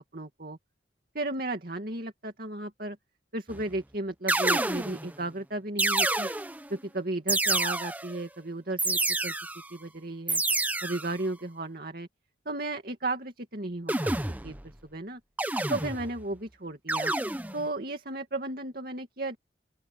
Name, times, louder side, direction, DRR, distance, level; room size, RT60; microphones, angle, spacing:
voice 1, 0.1-0.6 1.1-3.0 3.3-6.3 6.7-9.3 9.7-10.4 10.8-12.1 12.5-14.1 14.4-15.2 15.7-17.1 17.5-19.4, right 2 dB, 50° right, 2.4 m, -34 dB
sound 1, 3.5-3.8 4.3-5.1 5.8-6.7 7.3-8.2 8.8-9.7 10.3-11.1 13.9-14.6 15.4-16.2 16.9-17.7, right 2 dB, 10° right, 0.8 m, -28 dB
open air
head